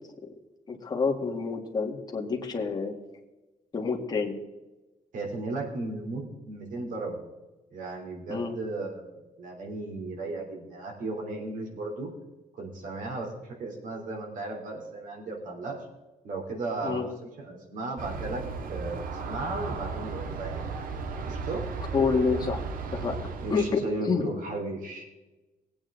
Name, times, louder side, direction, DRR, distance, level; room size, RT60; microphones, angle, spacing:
voice 1, 0.7-2.9 3.7-4.3 8.3-8.5 16.8-17.1 21.9-22.6 22.9-24.3, left 4 dB, 30° left, 1 dB, 1.8 m, -28 dB
voice 2, 5.1-7.2 7.7-12.1 12.5-13.3 13.6-15.9 16.2-18.4 18.7-20.7 21.2-21.6 23.4-25.1, right 2 dB, 65° right, 1 dB, 3.3 m, -35 dB
Aircraft, 18.0-23.8, right 4 dB, 90° right, 1.4 m, -35 dB
20.0 x 8.8 x 3.8 m, 1.1 s
wide cardioid pair, 170°, 14 cm